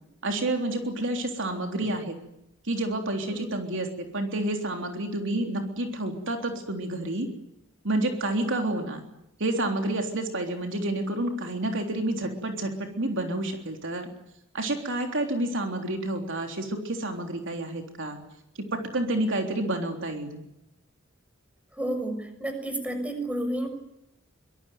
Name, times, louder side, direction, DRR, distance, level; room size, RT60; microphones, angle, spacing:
voice 1, 0.2-2.2 2.6-7.3 7.8-9.0 9.4-14.1 14.5-18.2 18.7-20.4, right 1 dB, 65° right, 4 dB, 3.5 m, -29 dB
voice 2, 21.7-23.7, right 1 dB, 5° right, 7 dB, 6.4 m, -31 dB
24.5 x 22.5 x 9.4 m, 0.84 s
head